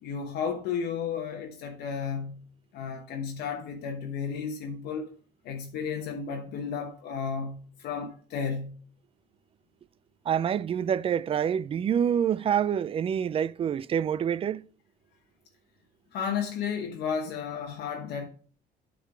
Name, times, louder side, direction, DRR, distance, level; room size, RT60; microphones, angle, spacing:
voice 1, 0.0-2.4 2.7-5.1 5.4-8.8 16.1-18.3, left 6 dB, 75° left, 1.0 m, -33 dB
voice 2, 10.3-14.6, right 8 dB, 35° right, 0.3 m, -27 dB
8.5 x 3.8 x 4.9 m
cardioid pair, 110°, 17 cm